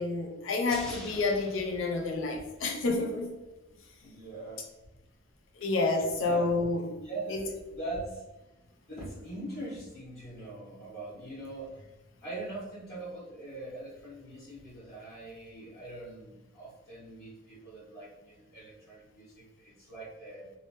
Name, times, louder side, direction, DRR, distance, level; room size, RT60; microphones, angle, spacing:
voice 1, 0.0-3.3 5.6-6.8 7.3-7.5, left 3 dB, 75° left, 2 dB, 0.5 m, -29 dB
sound 1, 0.7-3.1 3.4-3.5, equal, 5° left, 0.5 m, -46 dB
voice 2, 4.0-4.7 6.1-8.2 8.9-11.8 12.2-20.5, right 2 dB, 55° left, -9 dB, 1.2 m, -42 dB
2.8 x 2.1 x 2.9 m, 1.0 s
head